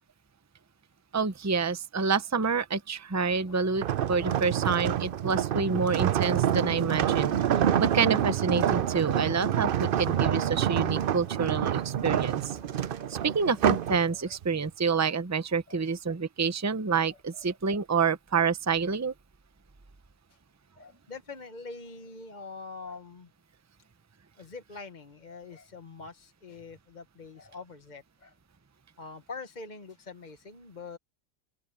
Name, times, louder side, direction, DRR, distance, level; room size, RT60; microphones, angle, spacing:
voice 1, 1.1-7.3 7.8-12.6 13.1-19.1, right 5 dB, 15° right, 0.7 m, -28 dB
sound 1, 3.3-14.4, left 3 dB, 80° left, 4.9 m, -54 dB
sound 2, 3.8-14.0 14.4-14.7, right 10 dB, 55° right, 0.7 m, -27 dB
voice 2, 17.1-17.4 20.8-23.3 24.4-28.3 29.0-31.0, left 4 dB, 40° left, 1.3 m, -44 dB
omnidirectional pair, 1.2 m